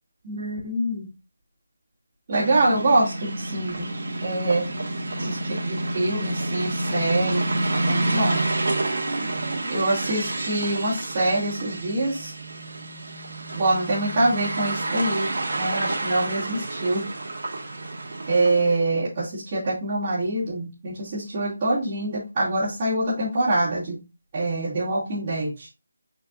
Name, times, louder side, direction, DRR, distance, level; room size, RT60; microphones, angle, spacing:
voice 1, 0.2-1.1 2.3-3.9 4.2-4.7 5.2-5.4 5.6-7.5 7.8-8.4 9.7-12.3 13.5-17.1 18.3-24.0 24.3-25.7, right 2 dB, 20° right, -12 dB, 2.6 m, -25 dB
sound 1, 2.3-18.8, right 2 dB, 60° right, 2.3 m, -29 dB
7.3 x 5.2 x 2.6 m, 0.28 s
figure-of-eight pair, 175°, 0 cm